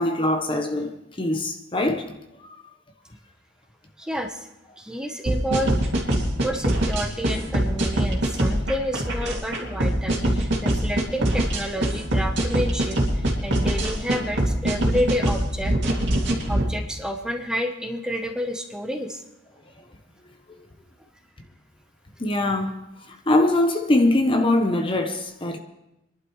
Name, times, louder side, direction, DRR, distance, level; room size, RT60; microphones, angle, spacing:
voice 1, 0.0-2.1 22.2-22.7 23.1-25.6, left 1 dB, 25° left, 0.9 m, -22 dB
voice 2, 4.0-4.5 4.8-5.8 6.1-15.8 16.5-19.2, equal, 5° right, 1.0 m, -30 dB
sound 1, 5.3-16.6, right 1 dB, 60° right, 2.6 m, -23 dB
26.5 x 11.5 x 3.2 m
head